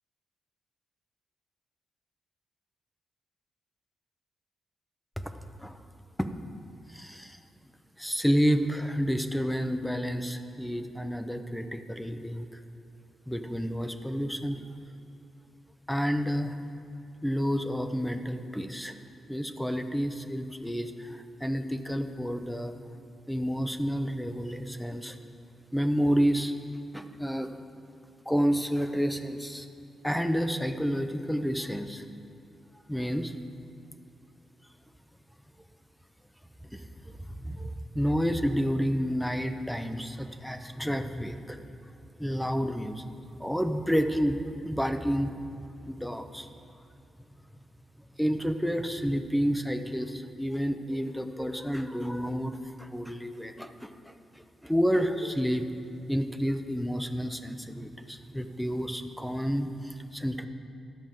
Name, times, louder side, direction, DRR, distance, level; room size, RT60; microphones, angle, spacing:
voice 1, 6.9-7.4 8.0-12.6 13.3-14.6 15.9-16.6 17.2-19.0 19.3-22.8 23.3-25.2 25.7-26.5 26.9-27.5 28.3-29.7 30.0-32.0 32.9-33.4 36.6-36.8 37.3-41.6 42.2-43.1 43.3-45.3 45.9-46.5 48.2-55.7 56.1-60.5, equal, ahead, 8 dB, 0.5 m, -30 dB
11.5 x 5.2 x 7.5 m, 2.7 s
wide cardioid pair, 140°, 0 cm